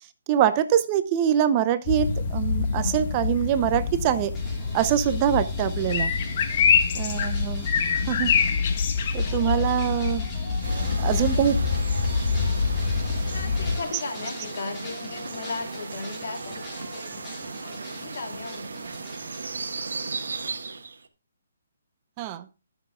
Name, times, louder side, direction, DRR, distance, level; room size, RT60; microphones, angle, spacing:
voice 1, 0.3-4.3 4.7-6.1 6.9-7.7 7.9-8.5 9.1-10.2 11.0-11.6 22.2-22.5, right 10 dB, 25° right, 12 dB, 0.6 m, -24 dB
sound 1, 1.9-13.8, left 5 dB, 40° left, 1.5 m, -25 dB
sound 2, 4.3-19.9, left 1 dB, 15° left, 4.3 m, -42 dB
voice 2, 6.5-6.9 10.7-11.5 12.1-12.6 13.3-18.9, left 4 dB, 60° left, 4 dB, 2.1 m, -38 dB
sound 3, 10.6-21.1, right 4 dB, 80° right, 1.3 m, -36 dB
19.5 x 7.0 x 2.3 m, 0.29 s
hypercardioid pair, 165°, 0 cm